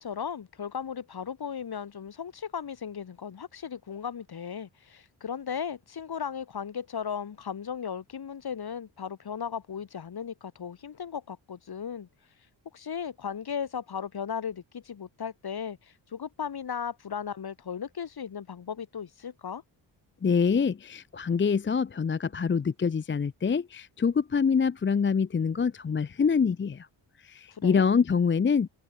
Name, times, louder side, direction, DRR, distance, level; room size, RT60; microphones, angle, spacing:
voice 1, 0.0-12.1 12.7-19.6 27.5-27.8, left 7 dB, 50° left, 2.4 m, -36 dB
voice 2, 20.2-26.9 27.2-28.7, left 6 dB, 25° left, 0.7 m, -25 dB
open air
supercardioid pair, 50°, 47 cm